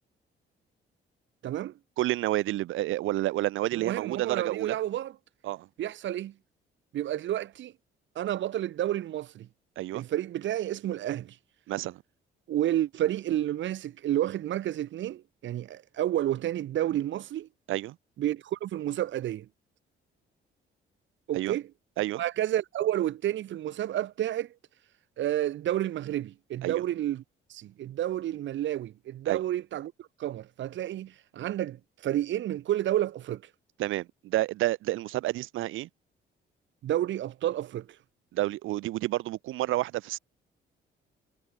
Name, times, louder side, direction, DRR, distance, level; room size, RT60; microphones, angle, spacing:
voice 1, 1.4-1.7 3.7-5.1 5.8-6.3 6.9-7.7 8.1-9.5 9.9-11.4 12.5-17.5 18.2-19.5 21.3-21.7 22.1-24.5 25.2-27.2 27.5-33.4 36.8-37.9, right 12 dB, 70° right, 1.1 m, -30 dB
voice 2, 2.0-4.8 5.4-5.7 9.8-10.0 11.7-12.0 17.7-18.0 21.3-21.5 22.0-22.2 26.6-26.8 29.3-29.4 33.8-35.9 38.3-40.2, right 16 dB, 90° right, 2.8 m, -29 dB
cardioid pair, 90°, 20 cm